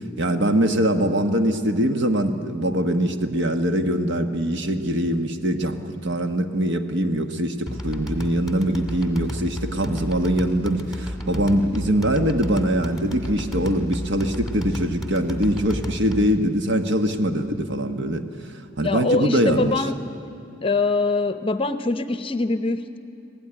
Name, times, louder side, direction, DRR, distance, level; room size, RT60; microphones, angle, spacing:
voice 1, 0.2-18.2 18.8-19.8, right 1 dB, 65° right, 6 dB, 1.3 m, -23 dB
sound 1, 7.7-16.4, equal, ahead, 2.0 m, -32 dB
voice 2, 18.8-19.9 20.6-23.0, left 3 dB, 25° left, 10 dB, 0.7 m, -23 dB
25.5 x 17.5 x 9.9 m, 2.6 s
head